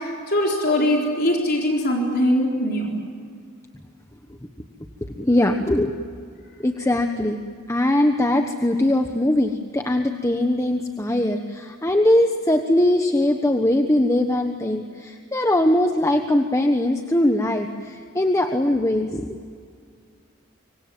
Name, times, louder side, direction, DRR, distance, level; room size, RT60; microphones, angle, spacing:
voice 1, 0.0-2.9, left 1 dB, 50° left, -1 dB, 4.0 m, -21 dB
voice 2, 5.0-5.9 6.6-7.4 7.7-19.4, left 1 dB, 15° left, 5 dB, 1.2 m, -21 dB
26.0 x 24.5 x 7.7 m, 2.2 s
head